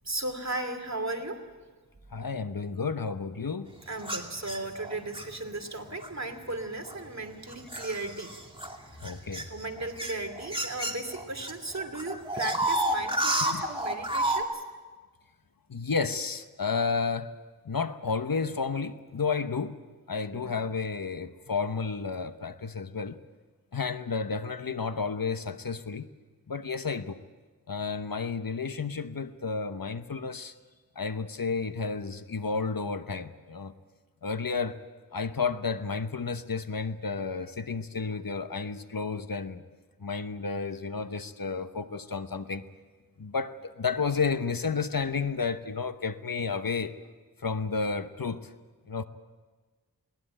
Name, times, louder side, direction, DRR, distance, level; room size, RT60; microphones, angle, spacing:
voice 1, 0.0-1.4 3.9-8.3 8.9-9.0 9.3-14.6 20.3-20.6, right 2 dB, 45° right, 5 dB, 2.7 m, -36 dB
voice 2, 2.1-3.7 9.0-9.5 12.6-12.7 13.3-13.6 15.7-17.3 17.6-19.8 20.1-23.2 23.7-26.1 26.5-27.2 27.7-30.5 31.0-33.7 34.2-34.8 35.1-39.6 40.0-42.6 43.2-47.0 47.4-48.5 48.9-49.0, left 5 dB, 65° left, 10 dB, 1.1 m, -31 dB
sound 1, 4.0-5.3 6.0-6.3 6.9-11.5 11.8-14.4, right 1 dB, 15° right, 2.4 m, -30 dB
21.0 x 18.5 x 8.9 m, 1.4 s
wide cardioid pair, 55°, 37 cm